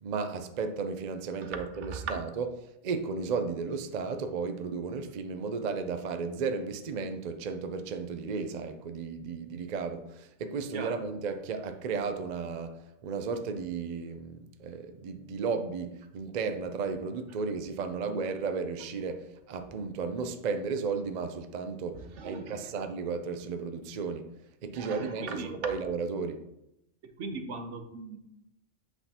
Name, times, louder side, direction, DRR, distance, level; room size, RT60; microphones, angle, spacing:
voice 1, 0.0-2.4 2.8-24.3 24.6-26.4, right 5 dB, 50° right, 0.5 m, -34 dB
voice 2, 1.4-2.2 10.7-11.0 21.9-22.8 24.7-25.5 27.2-28.2, right 4 dB, 75° right, 1.1 m, -39 dB
8.2 x 5.6 x 2.9 m
omnidirectional pair, 1.2 m